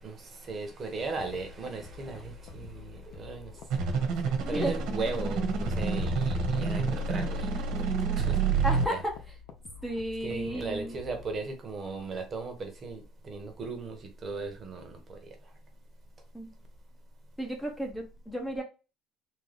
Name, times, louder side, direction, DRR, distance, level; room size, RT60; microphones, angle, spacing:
voice 1, 0.0-3.5 4.5-9.0 10.2-15.2, right 3 dB, 30° right, 1.0 m, -37 dB
sound 1, 1.0-11.4, left 8 dB, 70° left, 0.7 m, -49 dB
sound 2, 3.7-8.9, right 4 dB, 75° right, 1.4 m, -28 dB
voice 2, 8.6-8.9 9.8-10.9 16.3-16.5 17.4-18.6, right 1 dB, 5° left, 0.7 m, -33 dB
3.8 x 2.4 x 3.4 m
cardioid pair, 150°, 0 cm